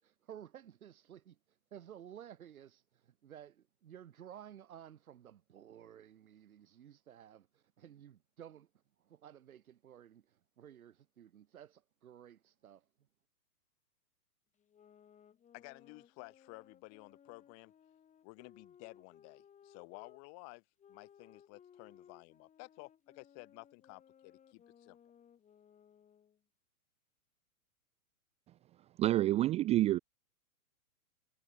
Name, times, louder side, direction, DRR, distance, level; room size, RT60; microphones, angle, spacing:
voice 1, 0.0-8.7 9.0-12.9, right 10 dB, 70° right, 7.5 m, -54 dB
sound 1, 14.6-20.2 20.8-26.4, left 8 dB, 15° left, 4.7 m, -62 dB
voice 2, 15.5-17.7 18.2-20.6 20.9-25.0, left 34 dB, 35° left, 3.3 m, -53 dB
voice 3, 29.0-30.0, right 14 dB, 15° right, 0.6 m, -28 dB
hypercardioid pair, 140°, 44 cm